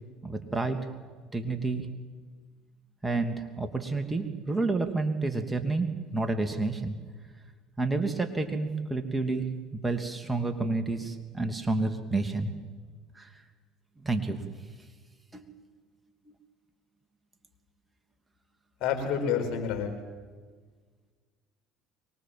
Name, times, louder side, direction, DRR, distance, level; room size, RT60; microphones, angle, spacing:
voice 1, 0.2-0.8 1.3-1.9 3.0-7.0 7.8-12.5 13.1-13.4 14.0-14.4 15.3-15.5 16.3-16.4, right 3 dB, 15° right, 6 dB, 2.6 m, -30 dB
voice 2, 18.8-19.9, left 7 dB, 65° left, 4 dB, 5.1 m, -28 dB
24.0 x 21.5 x 7.7 m, 1.5 s
hypercardioid pair, 75°, 0 cm